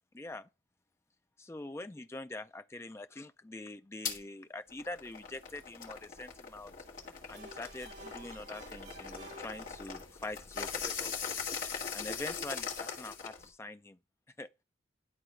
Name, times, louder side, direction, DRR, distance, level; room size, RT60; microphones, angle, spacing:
voice 1, 0.1-0.5 1.4-6.7 7.3-11.1 11.9-14.0 14.4-14.5, left 2 dB, 15° left, 0.3 m, -44 dB
sound 1, 4.0-4.2 4.7-13.5, left 6 dB, 40° left, 1.8 m, -40 dB
sound 2, 7.3-10.3, right 2 dB, 55° right, 2.7 m, -52 dB
11.0 x 4.0 x 3.2 m
head